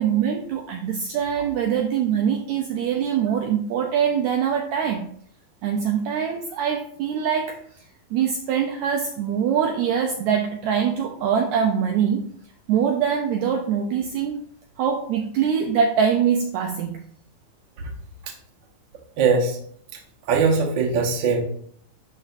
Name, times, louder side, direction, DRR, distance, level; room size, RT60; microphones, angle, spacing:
voice 1, 0.0-5.1 5.6-7.6 8.1-12.3 12.7-14.4 14.8-17.0, right 7 dB, 85° right, 3 dB, 1.6 m, -23 dB
voice 2, 19.2-19.6 20.3-21.4, right 5 dB, 65° right, 0 dB, 1.1 m, -20 dB
11.0 x 3.9 x 2.6 m, 0.62 s
omnidirectional pair, 3.9 m